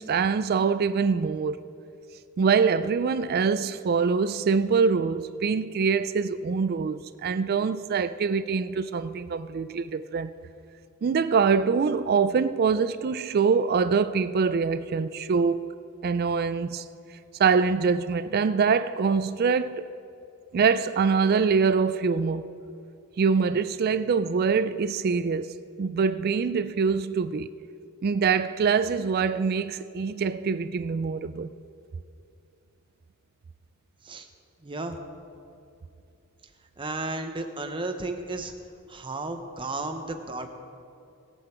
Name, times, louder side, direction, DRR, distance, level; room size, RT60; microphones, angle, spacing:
voice 1, 0.0-1.6 2.4-10.3 11.0-15.7 16.0-16.8 17.4-19.9 20.5-22.4 23.2-27.5 28.0-31.5, right 5 dB, 45° right, 0.3 m, -24 dB
voice 2, 34.6-35.0 36.8-38.5 38.9-40.5, right 2 dB, 25° right, 0.8 m, -33 dB
20.5 x 7.8 x 4.4 m
head